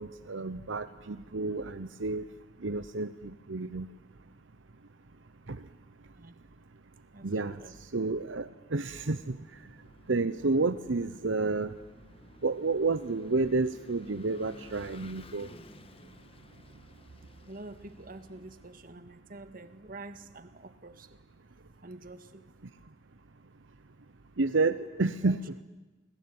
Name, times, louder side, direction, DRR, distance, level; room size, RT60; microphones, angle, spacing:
voice 1, 0.0-2.2 2.6-3.9 5.5-5.6 7.2-7.6 7.9-9.4 10.1-11.7 12.4-15.5 24.4-25.4, right 3 dB, 75° right, 11 dB, 0.9 m, -30 dB
voice 2, 7.1-7.7 17.5-21.2 21.8-22.5 25.2-25.4, right 2 dB, 45° right, 10 dB, 1.8 m, -47 dB
Vehicle / Engine, 9.2-18.9, left 2 dB, 30° left, 1.4 m, -54 dB
29.5 x 20.0 x 9.6 m, 1.2 s
head